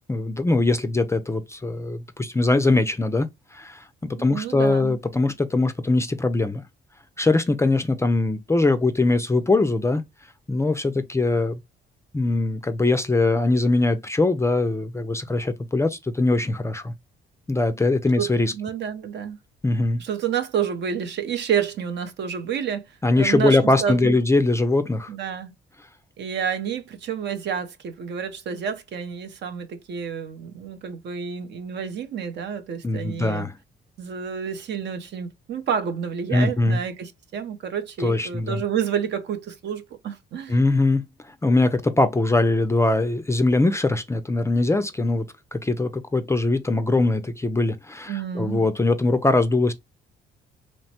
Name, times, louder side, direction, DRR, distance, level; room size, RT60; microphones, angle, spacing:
voice 1, 0.1-6.6 7.2-10.0 10.5-11.6 12.1-16.9 17.5-18.5 19.6-20.0 23.0-25.1 32.8-33.5 36.3-36.8 38.0-38.6 40.5-45.3 45.5-49.7, left 2 dB, 15° left, 0.3 m, -22 dB
voice 2, 4.3-5.0 18.2-19.4 20.0-24.2 25.1-25.5 26.2-33.5 34.0-40.6 48.1-48.6, right 7 dB, 60° right, 0.6 m, -29 dB
3.1 x 2.1 x 2.7 m
cardioid pair, 90°, 20 cm